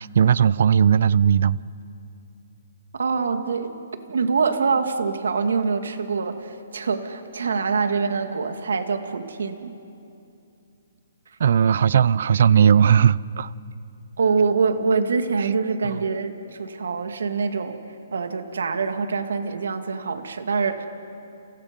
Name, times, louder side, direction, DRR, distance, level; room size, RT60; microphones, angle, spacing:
voice 1, 0.0-1.6 11.4-13.5, right 8 dB, 55° right, 21 dB, 0.5 m, -17 dB
voice 2, 2.9-3.8 4.1-9.7 14.2-17.8 18.1-20.9, right 5 dB, 90° right, 7 dB, 2.1 m, -24 dB
29.5 x 28.0 x 5.3 m, 2.7 s
hypercardioid pair, 170°, 0 cm